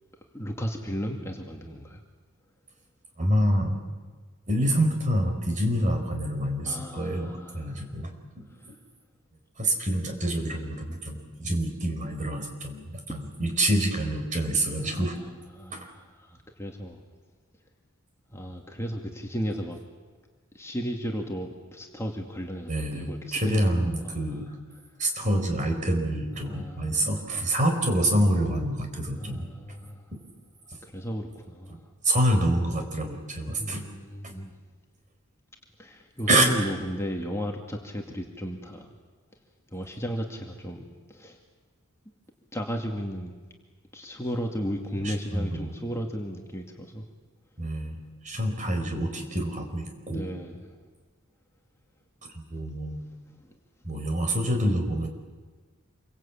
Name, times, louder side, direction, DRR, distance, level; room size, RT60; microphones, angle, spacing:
voice 1, 0.3-2.0 6.6-7.9 8.6-8.7 14.8-17.0 18.3-19.8 20.5-24.4 26.4-27.1 29.2-30.1 30.8-31.8 33.6-34.5 35.8-38.9 39.7-41.4 42.5-43.3 43.9-47.0 50.1-50.7 53.4-53.5, equal, 15° left, 1 dB, 2.2 m, -35 dB
voice 2, 3.2-3.8 4.5-8.1 8.4-8.7 9.6-15.2 15.7-15.9 22.7-24.5 25.0-29.5 30.1-30.2 31.7-31.8 32.0-33.8 34.2-34.3 36.3-36.5 45.0-45.7 47.6-48.0 48.2-50.3 52.5-53.0 53.8-55.1, right 1 dB, 35° right, 4 dB, 4.6 m, -27 dB
27.5 x 24.0 x 8.7 m, 1.4 s
head